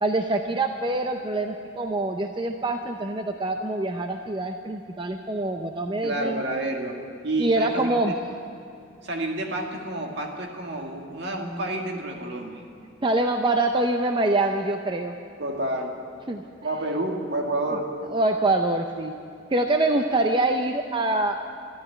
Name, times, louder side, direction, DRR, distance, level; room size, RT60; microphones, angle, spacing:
voice 1, 0.0-6.4 7.4-8.1 13.0-15.1 16.3-16.4 18.1-19.2 19.5-21.4, right 2 dB, 25° right, 4 dB, 0.6 m, -25 dB
voice 2, 6.0-7.0 7.2-8.1 9.0-12.6 15.4-16.0 16.6-17.9, right 1 dB, 60° right, 2 dB, 1.9 m, -29 dB
13.0 x 11.0 x 9.8 m, 2.7 s
head